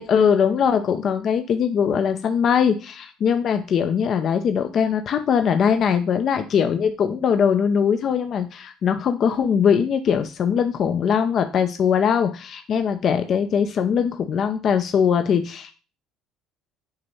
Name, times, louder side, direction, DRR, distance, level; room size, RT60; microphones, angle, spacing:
voice 1, 0.0-15.7, left 7 dB, 50° left, 7 dB, 0.6 m, -21 dB
6.6 x 3.0 x 5.4 m, 0.34 s
supercardioid pair, 105°, 0 cm